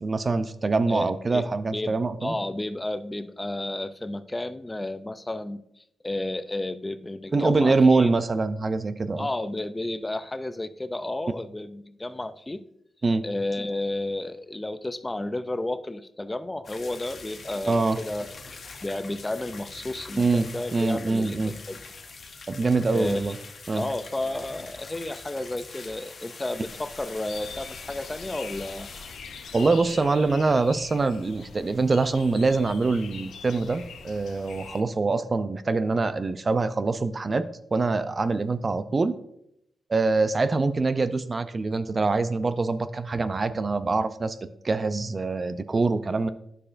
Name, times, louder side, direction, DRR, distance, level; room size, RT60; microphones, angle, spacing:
voice 1, 0.0-2.4 7.3-9.3 13.0-13.2 17.7-18.0 20.2-21.5 22.5-23.4 23.7-23.8 29.5-37.4 37.7-39.2 39.9-44.4 44.6-46.3, right 3 dB, 40° right, 12 dB, 0.5 m, -24 dB
voice 2, 0.9-8.1 9.2-12.6 13.2-18.3 18.8-21.8 22.9-23.3 23.7-28.9, left 2 dB, 20° left, 12 dB, 0.4 m, -32 dB
sound 1, 16.6-31.0 31.2-31.3 31.6-31.7 32.1-32.2, left 4 dB, 55° left, 1.0 m, -44 dB
sound 2, 27.3-34.8, left 6 dB, 90° left, 0.7 m, -43 dB
9.9 x 6.5 x 2.5 m, 0.76 s
cardioid pair, 75°, 0 cm